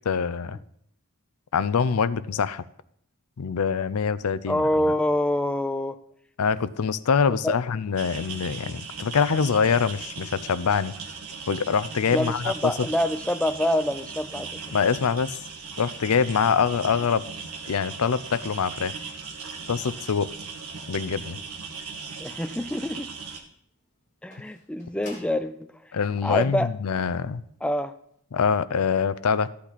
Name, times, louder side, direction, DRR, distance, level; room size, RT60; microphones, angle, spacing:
voice 1, 0.1-0.6 1.5-2.6 3.4-4.9 6.4-10.9 11.5-12.7 14.7-15.4 15.8-17.2 17.7-18.9 19.7-20.3 20.9-21.4 25.9-27.4 28.3-29.5, left 6 dB, 90° left, 16 dB, 0.5 m, -24 dB
voice 2, 4.5-6.0 7.4-7.6 12.1-14.5 22.2-23.1 24.2-25.9 26.2-26.7 27.6-27.9, left 1 dB, 5° left, 9 dB, 0.4 m, -26 dB
sound 1, 8.0-23.4, right 5 dB, 80° right, 1.6 m, -38 dB
sound 2, 17.6-25.5 26.4-26.5 27.1-27.3 27.6-27.7 28.0-28.1, left 2 dB, 35° left, 2.6 m, -52 dB
13.5 x 8.5 x 4.1 m, 0.70 s
head